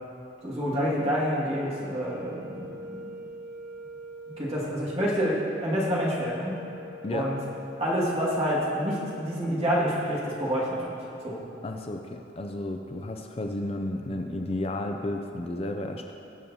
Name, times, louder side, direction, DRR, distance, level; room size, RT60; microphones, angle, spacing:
voice 1, 0.4-3.0 4.3-6.5 7.1-7.4 7.8-11.0 11.2-11.4, equal, 30° right, -6 dB, 2.1 m, -28 dB
sound 1, 1.9-10.1, left 1 dB, 65° right, 0.7 m, -44 dB
voice 2, 11.6-16.1, left 1 dB, 30° left, 4 dB, 0.4 m, -32 dB
20.5 x 7.1 x 2.8 m, 2.8 s
head